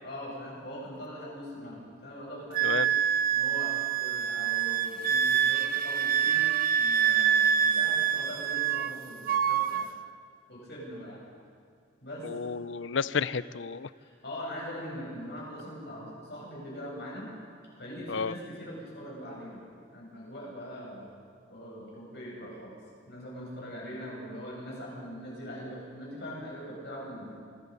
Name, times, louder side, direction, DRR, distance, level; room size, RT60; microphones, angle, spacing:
voice 1, 0.0-2.8 3.3-6.5 6.7-9.9 10.5-11.2 12.0-12.3 14.0-17.3 17.8-21.1 21.5-22.8 23.1-27.4, equal, 60° left, -3 dB, 7.9 m, -42 dB
Wind instrument woodwind instrument, 2.5-9.0 9.3-9.9, right 8 dB, 50° right, 0.8 m, -26 dB
voice 2, 12.2-13.9 18.1-18.3, left 5 dB, 80° left, 17 dB, 0.6 m, -31 dB
26.0 x 20.5 x 5.5 m, 2.2 s
head